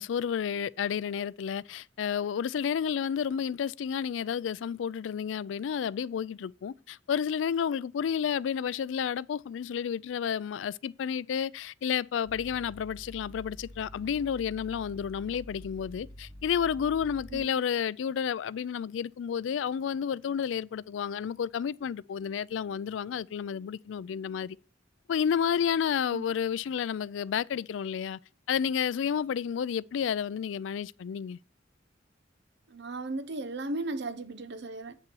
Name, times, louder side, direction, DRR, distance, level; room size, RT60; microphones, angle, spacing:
voice 1, 0.0-24.6 25.1-28.2 28.5-31.4, left 7 dB, 90° left, 0.3 m, -31 dB
sound 1, 12.2-17.4, equal, 25° right, 4.0 m, -47 dB
voice 2, 17.3-17.6 26.1-26.3 32.7-34.9, right 2 dB, 65° right, 0.9 m, -36 dB
8.1 x 6.7 x 4.6 m
head